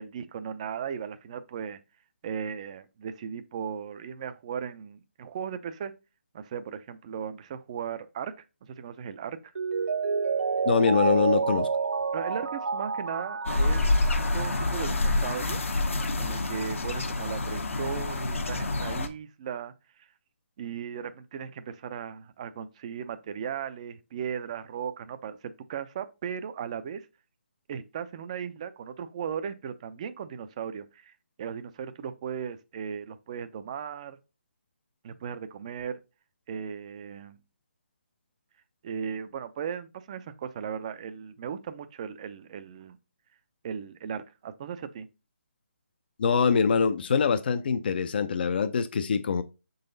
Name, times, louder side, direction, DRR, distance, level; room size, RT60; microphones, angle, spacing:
voice 1, 0.0-1.8 2.2-5.9 6.3-8.3 8.7-9.4 12.1-13.8 14.2-15.6 16.2-19.7 20.6-27.1 27.7-31.1 31.4-34.2 35.0-36.0 36.5-37.4 38.8-43.0 43.6-45.1, right 7 dB, 30° right, 0.5 m, -37 dB
Mallet percussion, 9.5-15.1 15.4-15.5, right 5 dB, 90° right, 0.4 m, -29 dB
voice 2, 10.6-11.7 46.2-49.4, left 6 dB, 45° left, 0.5 m, -24 dB
sound 1, 13.4-19.1, left 2 dB, 75° left, 1.1 m, -27 dB
6.4 x 4.0 x 3.9 m
hypercardioid pair, 160°, 7 cm